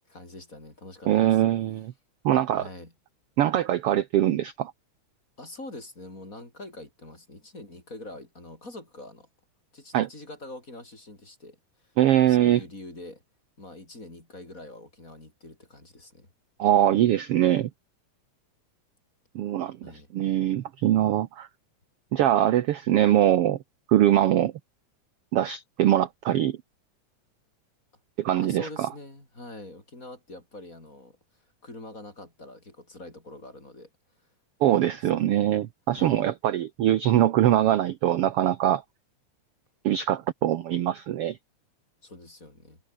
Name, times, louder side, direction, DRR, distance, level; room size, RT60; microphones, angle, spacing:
voice 1, 0.1-1.4 2.5-2.9 5.4-9.3 9.7-11.9 12.2-13.2 13.6-16.3 19.8-20.1 28.4-31.2 31.6-33.9 34.6-35.1 35.9-36.2 42.0-42.8, left 2 dB, 25° left, 6.4 m, -44 dB
voice 2, 1.1-1.9 2.2-2.7 3.4-4.7 9.9-10.1 12.0-12.6 16.6-17.7 19.3-19.8 20.1-21.5 22.1-23.6 23.9-24.5 25.3-26.6 28.2-28.9 34.6-38.8 39.8-41.4, right 12 dB, 65° right, 1.5 m, -22 dB
omnidirectional pair, 3.6 m